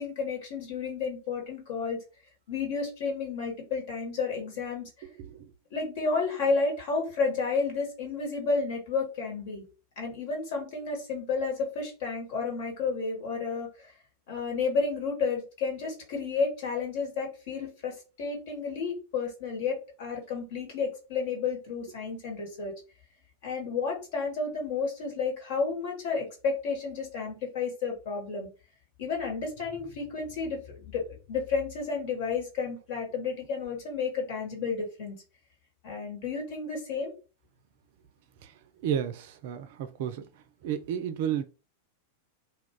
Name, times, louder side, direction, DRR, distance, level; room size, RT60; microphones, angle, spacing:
voice 1, 0.0-2.0 2.5-4.9 5.7-9.6 10.0-13.9 14.3-22.7 23.4-28.5 29.0-35.2 35.8-37.1, left 4 dB, 50° left, 1.2 m, -31 dB
voice 2, 5.0-5.4 38.8-40.3 40.6-41.4, right 9 dB, 50° right, 0.4 m, -32 dB
2.3 x 2.3 x 3.6 m
figure-of-eight pair, 90°, 0 cm